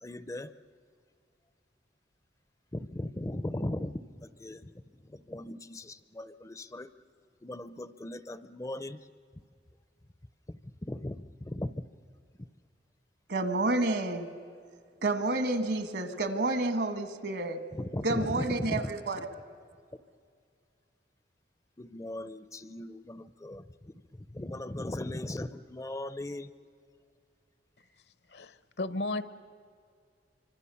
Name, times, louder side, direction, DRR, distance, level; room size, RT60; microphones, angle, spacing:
voice 1, 0.0-0.5 2.7-4.7 5.0-6.9 7.4-9.0 10.5-11.7 17.7-18.9 21.8-26.5, left 1 dB, 20° left, 14 dB, 0.5 m, -38 dB
voice 2, 13.3-14.3 15.0-17.6 18.0-19.2, right 2 dB, 65° right, 9 dB, 1.7 m, -29 dB
voice 3, 28.3-29.2, left 2 dB, 65° left, 14 dB, 0.9 m, -34 dB
25.5 x 25.0 x 7.0 m, 2.2 s
head